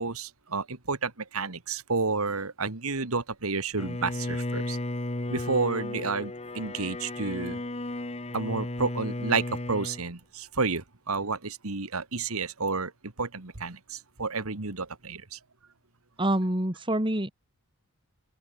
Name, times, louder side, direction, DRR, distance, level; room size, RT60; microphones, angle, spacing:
voice 1, 0.0-4.8 5.3-7.6 8.3-15.4, right 4 dB, 85° right, 2.0 m, -31 dB
Bowed string instrument, 3.8-10.0, left 1 dB, 30° left, 1.4 m, -34 dB
voice 2, 16.2-17.3, right 1 dB, 25° right, 2.8 m, -26 dB
open air
head